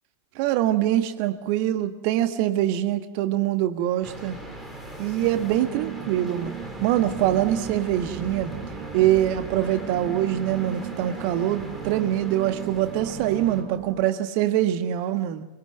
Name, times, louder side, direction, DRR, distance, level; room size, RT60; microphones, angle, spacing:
voice 1, 0.4-4.4 5.0-6.5 6.8-8.5 8.9-15.4, right 12 dB, 45° right, 10 dB, 1.6 m, -24 dB
sound 1, 4.0-13.6, right 1 dB, ahead, 4.2 m, -40 dB
sound 2, 5.2-14.1, right 8 dB, 25° right, 5.5 m, -37 dB
23.5 x 21.5 x 7.8 m, 1.0 s
figure-of-eight pair, 90°, 0 cm